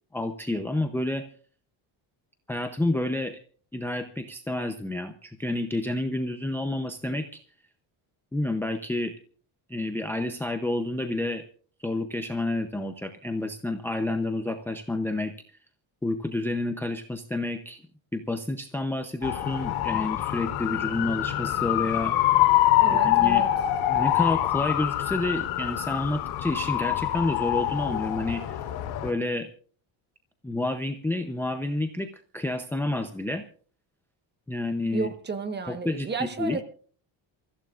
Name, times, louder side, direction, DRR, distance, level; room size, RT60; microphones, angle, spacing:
voice 1, 0.1-1.2 2.5-3.4 3.7-7.4 8.3-9.1 9.7-11.4 11.8-15.3 16.0-17.8 18.1-22.1 22.9-23.4 23.9-28.6 29.0-29.5 30.4-32.1 32.3-33.4 34.5-35.1 35.7-36.1 36.4-36.6, left 2 dB, 5° left, 0.7 m, -29 dB
sound 1, 19.2-29.1, left 14 dB, 85° left, 3.2 m, -25 dB
voice 2, 22.8-23.5 34.9-36.6, right 4 dB, 20° right, 1.3 m, -32 dB
28.5 x 15.5 x 2.5 m
cardioid pair, 170°, 48 cm